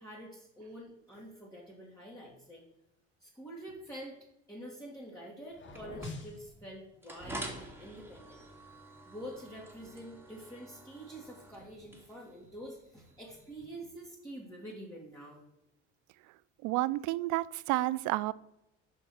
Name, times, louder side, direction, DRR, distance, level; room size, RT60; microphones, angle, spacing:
voice 1, 0.0-2.6 3.2-4.2 4.5-8.5 9.1-15.4, right 1 dB, 10° left, -5 dB, 2.0 m, -47 dB
sound 1, 5.5-6.4, left 3 dB, 35° left, 1.5 m, -49 dB
sound 2, 5.7-13.6, equal, 5° right, 2.1 m, -47 dB
voice 2, 16.6-18.3, right 17 dB, 60° right, 19 dB, 0.4 m, -30 dB
5.4 x 4.6 x 6.2 m, 0.86 s
hypercardioid pair, 70°, 36 cm